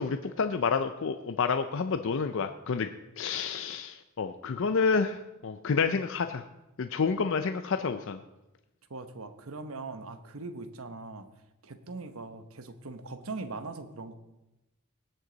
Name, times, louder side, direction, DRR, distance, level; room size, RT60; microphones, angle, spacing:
voice 1, 0.0-6.4 6.8-8.2, left 5 dB, 60° left, 8 dB, 0.5 m, -29 dB
voice 2, 8.9-11.3 11.6-14.1, right 3 dB, 70° right, 10 dB, 0.9 m, -41 dB
18.0 x 8.0 x 4.0 m, 0.98 s
head